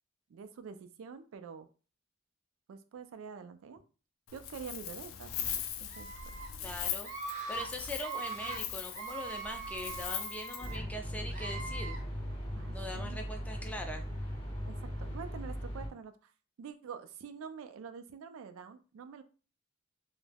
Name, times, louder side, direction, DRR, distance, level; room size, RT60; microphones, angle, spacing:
voice 1, 0.3-1.7 2.7-3.8 4.3-6.1 12.6-13.2 14.7-16.3 16.6-19.2, right 6 dB, 90° right, 9 dB, 0.3 m, -47 dB
Wind, 4.3-10.8, left 9 dB, 85° left, 0.3 m, -40 dB
Screaming, 5.9-6.5 7.0-7.7 8.0-8.6 8.9-10.8 11.3-12.0, right 4 dB, 40° right, 0.6 m, -41 dB
voice 2, 6.6-7.1 7.5-12.0 12.7-14.1, left 1 dB, 5° left, 4 dB, 0.3 m, -41 dB
sound 1, 10.6-15.9, equal, 30° left, 0.7 m, -39 dB
2.2 x 2.0 x 3.2 m, 0.37 s
head